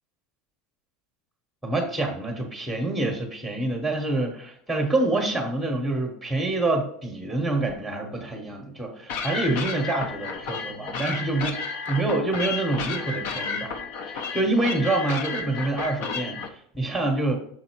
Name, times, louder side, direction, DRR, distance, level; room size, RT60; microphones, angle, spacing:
voice 1, 1.6-13.7 14.1-17.4, right 2 dB, 5° left, 2 dB, 1.0 m, -26 dB
sound 1, 9.1-16.5, left 5 dB, 65° left, 0.9 m, -32 dB
6.4 x 4.0 x 4.5 m, 0.63 s
supercardioid pair, 155°, 0 cm